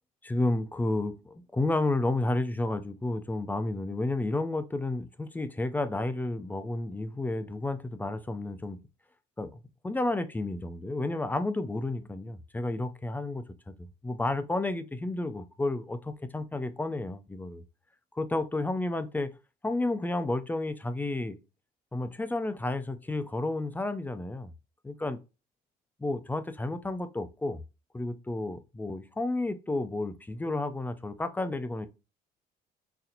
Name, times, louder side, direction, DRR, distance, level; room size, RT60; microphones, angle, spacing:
voice 1, 0.2-8.8 9.4-17.6 18.1-19.3 19.6-21.4 21.9-24.5 24.8-25.2 26.0-27.6 27.9-31.9, left 2 dB, 10° left, 0.4 m, -31 dB
4.1 x 2.8 x 2.5 m
cardioid pair, 110°, 17 cm